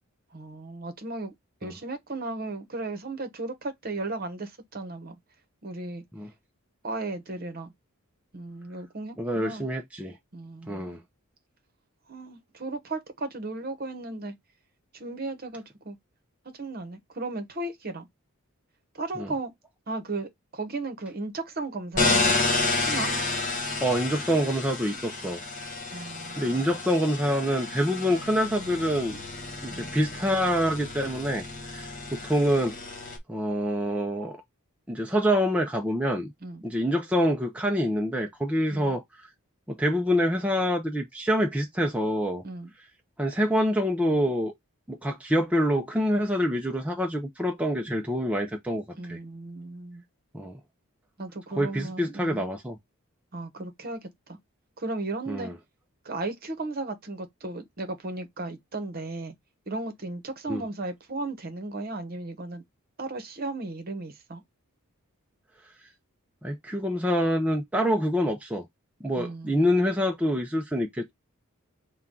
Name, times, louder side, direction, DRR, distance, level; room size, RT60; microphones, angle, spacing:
voice 1, 0.3-1.3 1.6-5.2 5.6-6.0 6.8-7.7 8.3-9.7 10.3-11.0 12.1-14.3 14.9-16.0 16.4-18.1 18.9-19.5 19.9-22.3 22.8-23.1 25.9-26.6 29.7-29.9 36.4-36.6 38.7-39.0 42.4-42.7 48.9-50.0 51.2-52.5 53.3-54.4 54.8-55.5 56.0-59.3 59.7-62.6 63.0-64.4 69.2-69.8, right 2 dB, 45° right, 1.0 m, -35 dB
voice 2, 9.2-10.2 10.7-11.0 19.2-19.3 23.8-25.4 26.4-29.2 29.6-32.8 33.3-34.4 34.9-36.3 36.6-39.0 39.7-42.4 43.2-44.5 44.9-49.2 50.3-50.6 51.6-52.8 55.3-55.5 60.5-60.6 66.4-68.6 69.0-71.1, equal, 5° right, 0.5 m, -26 dB
sound 1, 21.9-33.2, left 3 dB, 40° left, 1.4 m, -30 dB
5.6 x 2.3 x 3.7 m
head